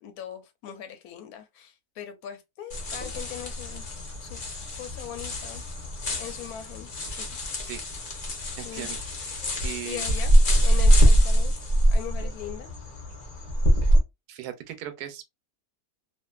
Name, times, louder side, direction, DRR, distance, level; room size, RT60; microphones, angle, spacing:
voice 1, 0.0-3.8 4.2-4.4 4.7-5.6 6.2-7.3 8.6-8.9 9.4-10.3 10.6-11.6 11.9-12.7, left 10 dB, 80° left, 1.1 m, -40 dB
sound 1, 2.7-14.0, equal, 45° left, 0.7 m, -23 dB
voice 2, 8.6-9.0 9.6-10.1 14.3-15.3, right 12 dB, 85° right, 1.1 m, -37 dB
2.5 x 2.4 x 2.2 m
omnidirectional pair, 1.6 m